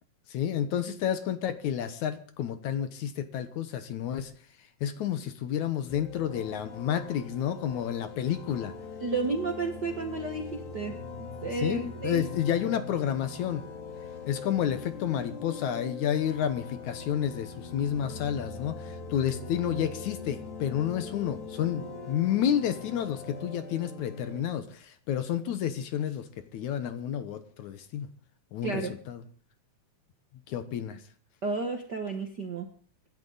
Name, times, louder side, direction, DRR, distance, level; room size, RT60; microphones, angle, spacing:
voice 1, 0.3-4.3 4.8-8.8 11.6-13.6 14.3-28.1 28.5-28.8 29.1-29.2 30.5-31.0, left 9 dB, 65° left, 11 dB, 2.3 m, -30 dB
sound 1, 5.9-24.4, left 4 dB, 90° left, 4.4 m, -42 dB
voice 2, 9.0-12.2 28.6-28.9 31.4-32.7, right 3 dB, 50° right, 4 dB, 1.2 m, -32 dB
25.0 x 12.0 x 4.0 m, 0.42 s
omnidirectional pair, 4.0 m